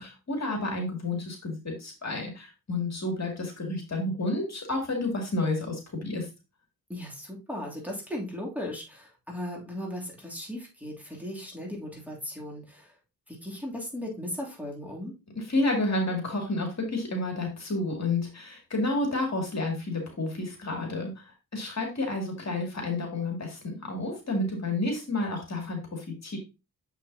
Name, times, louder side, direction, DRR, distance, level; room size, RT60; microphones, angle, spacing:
voice 1, 0.0-6.3 15.4-26.4, left 2 dB, 45° left, 1 dB, 2.3 m, -30 dB
voice 2, 6.9-12.9 13.3-15.1, left 1 dB, 5° right, -3 dB, 2.6 m, -37 dB
7.0 x 5.9 x 2.7 m, 0.27 s
cardioid pair, 80°, 37 cm